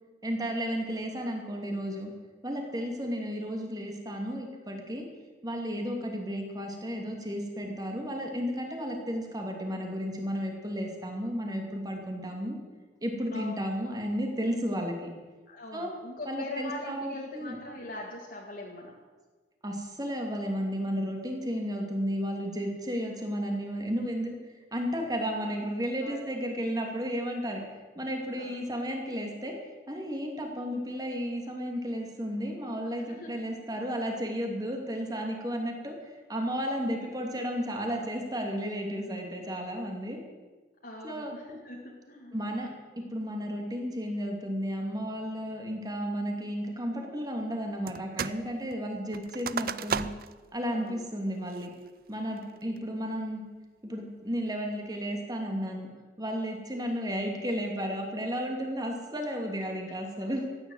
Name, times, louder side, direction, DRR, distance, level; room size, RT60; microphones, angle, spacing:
voice 1, 0.2-2.1 2.4-5.0 5.4-12.6 13.0-15.1 15.7-15.9 16.3-17.6 19.6-24.4 24.7-27.6 27.9-29.5 29.9-40.2 41.0-41.3 42.3-42.7 43.1-50.1 50.5-51.7 52.1-53.4 53.8-55.9 56.2-60.4, equal, 20° right, 2 dB, 2.6 m, -33 dB
voice 2, 13.3-13.6 15.5-19.0 21.7-22.0 26.0-26.3 28.3-28.5 32.9-33.4 36.8-37.0 40.8-42.4 50.7-51.0 52.5-53.1 59.9-60.3, left 2 dB, 55° left, -3 dB, 2.1 m, -42 dB
sound 1, 47.9-48.4 48.7-50.4 50.9-51.0 51.5-51.9 52.4-52.8, right 6 dB, 55° right, 0.5 m, -35 dB
15.0 x 10.5 x 8.0 m, 1.3 s
head